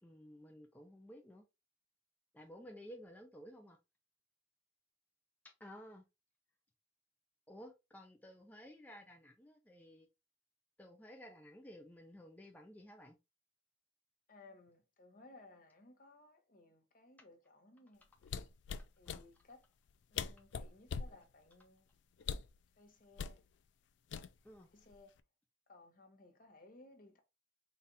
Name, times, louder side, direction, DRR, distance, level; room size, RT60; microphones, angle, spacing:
voice 1, 0.0-1.4 2.3-3.8 5.4-6.0 7.5-10.1 10.8-13.2 18.8-19.2 24.4-24.7, equal, 10° left, 0.4 m, -54 dB
voice 2, 14.3-18.0 19.0-19.6 20.1-21.8 22.8-23.4 24.7-25.1 25.7-27.2, left 2 dB, 45° left, 0.9 m, -60 dB
sound 1, 18.2-19.2 19.9-20.0 20.1-21.2 22.2-22.6 23.2-23.4 24.1-24.6 24.9-25.2, left 6 dB, 75° left, 0.3 m, -41 dB
4.1 x 2.4 x 3.9 m
head